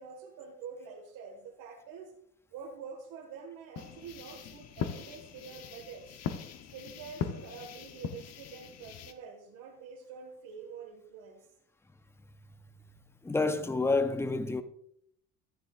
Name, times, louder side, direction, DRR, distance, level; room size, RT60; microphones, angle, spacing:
voice 1, 0.0-2.1 2.5-6.2 6.7-11.5, right 6 dB, 80° right, 2.0 m, -46 dB
sound 1, 3.8-9.1, left 8 dB, 50° left, 1.0 m, -40 dB
voice 2, 13.2-14.6, left 3 dB, 10° left, 0.6 m, -28 dB
14.0 x 10.0 x 2.5 m
cardioid pair, 130°, 32 cm